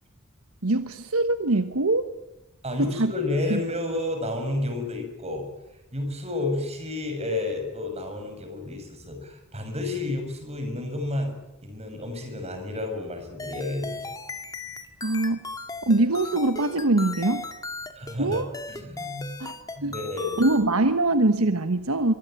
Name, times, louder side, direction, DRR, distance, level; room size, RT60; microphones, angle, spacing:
voice 1, 0.6-2.1 2.8-3.1 3.5-3.6 15.0-15.4 15.9-17.4 18.2-18.5 19.4-19.5 19.8-19.9 20.4-22.1, right 2 dB, 80° right, 10 dB, 1.3 m, -23 dB
voice 2, 2.6-5.5 5.9-11.3 11.6-14.1 17.9-19.3 19.8-20.3, left 2 dB, 30° right, 6 dB, 6.5 m, -31 dB
sound 1, 13.4-20.6, left 3 dB, 15° left, 2.1 m, -37 dB
24.0 x 23.5 x 9.0 m, 0.95 s
head